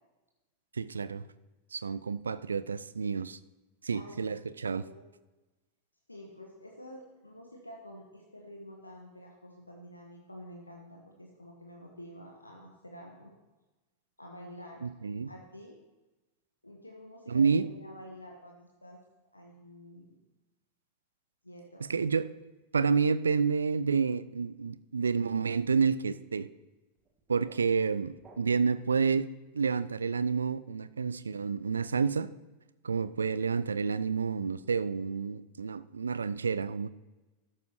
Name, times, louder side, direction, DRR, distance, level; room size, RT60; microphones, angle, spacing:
voice 1, 0.7-1.2 1.7-3.4 3.8-4.8 14.8-15.3 17.3-17.7 21.8-22.3 22.7-26.5 27.3-32.3 32.8-36.9, right 5 dB, 75° right, 16 dB, 0.4 m, -29 dB
voice 2, 3.9-4.4 4.6-5.1 6.1-13.3 14.2-14.9 15.2-15.8 16.6-19.0 19.3-20.2 21.4-21.8, equal, 85° left, 1 dB, 1.2 m, -49 dB
sound 1, 27.0-28.9, right 3 dB, 25° right, 1.6 m, -58 dB
13.0 x 11.5 x 3.0 m, 1.1 s
figure-of-eight pair, 90°, 0 cm